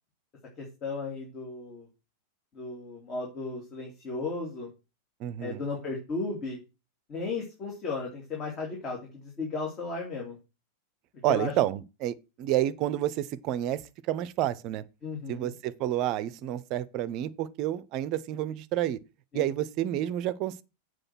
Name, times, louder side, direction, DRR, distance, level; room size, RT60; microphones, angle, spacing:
voice 1, 0.6-1.9 2.5-4.7 5.4-6.6 7.1-10.4 11.3-11.5 15.0-15.5 19.3-19.4, left 3 dB, 30° left, 2.9 m, -35 dB
voice 2, 5.2-5.6 11.2-13.8 14.1-14.8 15.3-19.0 19.3-20.6, right 13 dB, 40° right, 0.6 m, -29 dB
7.7 x 4.9 x 6.0 m
figure-of-eight pair, 90°, 0 cm